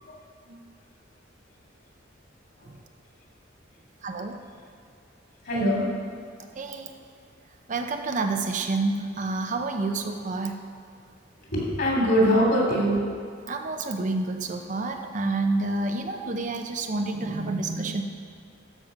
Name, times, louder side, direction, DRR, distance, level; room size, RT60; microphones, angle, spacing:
voice 1, 4.0-4.4 6.6-6.9 7.7-10.6 13.5-18.0, right 3 dB, 40° right, 5 dB, 0.6 m, -28 dB
voice 2, 5.4-5.8 11.4-13.0, equal, 55° left, -2 dB, 2.8 m, -22 dB
12.5 x 6.9 x 5.0 m, 2.2 s
head